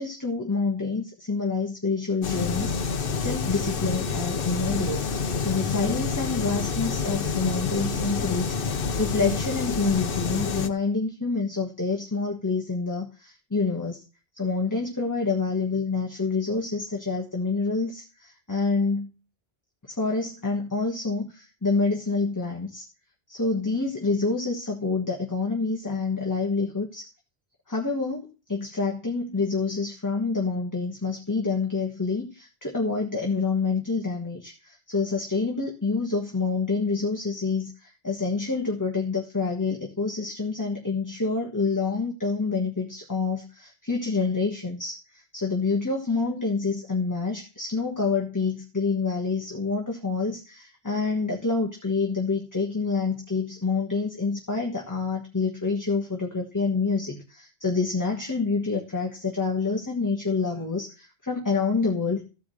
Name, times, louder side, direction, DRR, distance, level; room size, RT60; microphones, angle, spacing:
voice 1, 0.0-5.0 5.4-14.0 14.3-19.1 19.9-22.8 23.3-27.1 27.7-62.2, left 4 dB, 15° left, -1 dB, 1.4 m, -27 dB
sound 1, 2.2-10.7, left 5 dB, 60° left, 1.0 m, -28 dB
14.5 x 4.9 x 6.3 m, 0.34 s
omnidirectional pair, 1.1 m